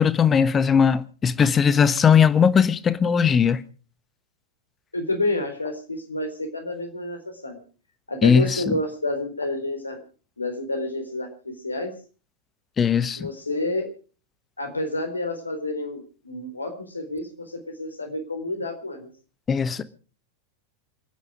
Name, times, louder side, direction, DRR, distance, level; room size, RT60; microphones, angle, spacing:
voice 1, 0.0-3.6 8.2-8.7 12.8-13.3 19.5-19.8, left 7 dB, 20° left, 1.2 m, -19 dB
voice 2, 4.9-7.6 8.1-10.0 10.4-11.3 11.6-11.9 13.1-13.9 14.6-19.1, left 2 dB, 80° left, 4.1 m, -29 dB
28.0 x 9.6 x 5.0 m
figure-of-eight pair, 90°, 0 cm